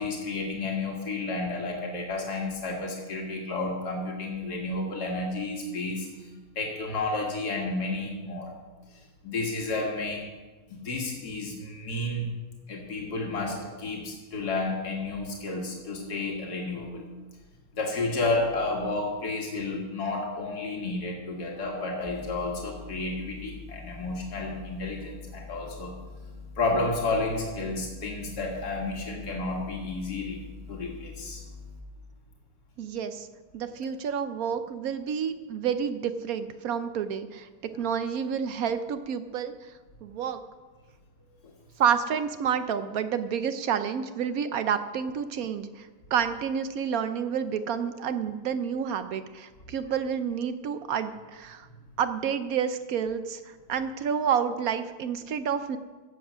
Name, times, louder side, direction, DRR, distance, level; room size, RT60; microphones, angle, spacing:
voice 1, 0.0-8.5 8.9-10.3 10.7-12.3 12.7-17.1 17.7-26.0 26.6-30.4 30.7-31.4 41.4-41.5, left 2 dB, 90° left, 0 dB, 2.3 m, -31 dB
sound 1, 22.1-31.8, left 4 dB, 15° left, 0.6 m, -44 dB
voice 2, 32.8-33.3 33.5-37.5 37.8-39.5 40.0-40.4 41.8-51.7 52.0-55.8, right 7 dB, 70° right, 10 dB, 1.1 m, -29 dB
16.0 x 7.5 x 6.2 m, 1.3 s
omnidirectional pair, 1.6 m